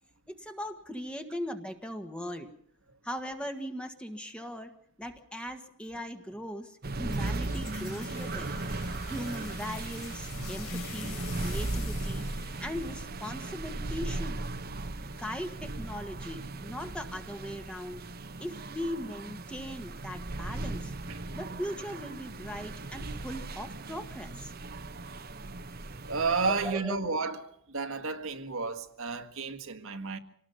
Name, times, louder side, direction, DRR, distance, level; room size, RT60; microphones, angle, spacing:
voice 1, 0.3-2.5 3.0-8.5 9.1-12.2 12.6-14.4 15.0-18.0 18.4-20.9 21.3-24.5 26.5-27.0, equal, 5° left, 1.6 m, -39 dB
sound 1, 6.8-26.7, right 2 dB, 45° right, 1.1 m, -37 dB
sound 2, 7.1-13.7, left 7 dB, 75° left, 3.8 m, -47 dB
voice 2, 26.0-27.4 27.7-30.2, right 4 dB, 65° right, 1.8 m, -31 dB
26.0 x 18.5 x 5.5 m
head